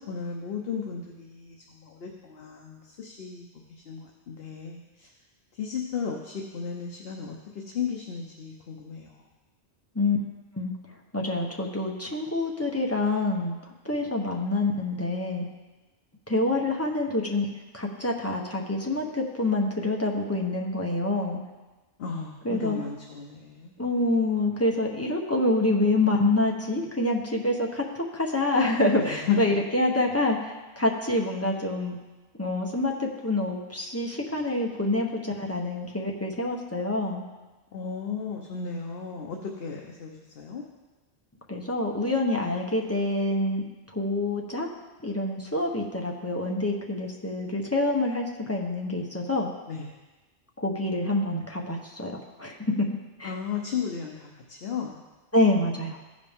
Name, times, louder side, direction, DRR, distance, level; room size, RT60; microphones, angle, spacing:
voice 1, 0.1-5.1 5.5-9.2 22.0-23.7 29.1-29.6 37.7-40.6 49.7-49.9 53.2-55.0, left 6 dB, 65° left, 1 dB, 1.0 m, -34 dB
voice 2, 11.1-13.5 13.8-15.5 16.3-17.5 17.7-21.4 22.4-22.8 23.8-32.0 32.4-37.2 41.5-43.6 43.9-44.7 45.0-49.5 50.6-52.6 53.2-53.3 55.3-56.0, left 2 dB, 15° left, 0 dB, 0.9 m, -26 dB
15.0 x 5.1 x 3.6 m, 1.2 s
omnidirectional pair, 1.1 m